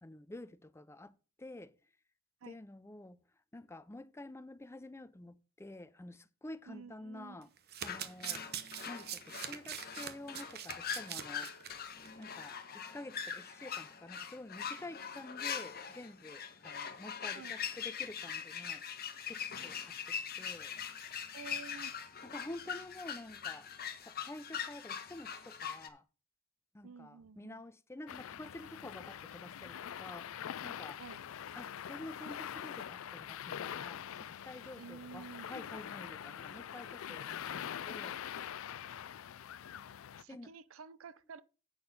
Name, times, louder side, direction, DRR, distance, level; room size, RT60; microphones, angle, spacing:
voice 1, 0.0-1.7 2.5-3.2 3.5-7.5 7.8-8.4 8.9-11.5 12.2-18.8 19.3-20.7 22.2-23.7 24.0-26.0 26.7-30.3 30.6-31.0 31.6-38.5 40.3-40.5, left 1 dB, 15° left, 0.5 m, -49 dB
voice 2, 6.7-7.5 17.3-17.6 21.3-21.9 26.8-27.6 31.0-31.2 34.7-35.5 39.7-39.8 40.2-41.4, right 5 dB, 85° right, 0.6 m, -51 dB
Domestic sounds home sounds, 7.4-11.7 12.0-12.2 12.5-12.6, right 9 dB, 50° right, 0.9 m, -43 dB
sound 1, 7.8-25.9, left 7 dB, 50° left, 1.2 m, -42 dB
sound 2, 28.1-40.2, left 9 dB, 90° left, 0.4 m, -44 dB
8.7 x 6.3 x 5.2 m
head